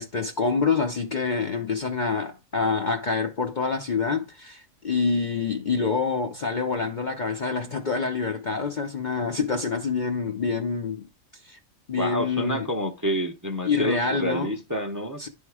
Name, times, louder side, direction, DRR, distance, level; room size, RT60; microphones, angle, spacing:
voice 1, 0.0-11.1 11.4-11.6 11.9-12.7 13.6-14.5 15.2-15.3, left 4 dB, 45° left, 0.7 m, -26 dB
voice 2, 12.0-15.3, equal, 20° right, 0.7 m, -28 dB
10.5 x 3.6 x 4.7 m
omnidirectional pair, 1.4 m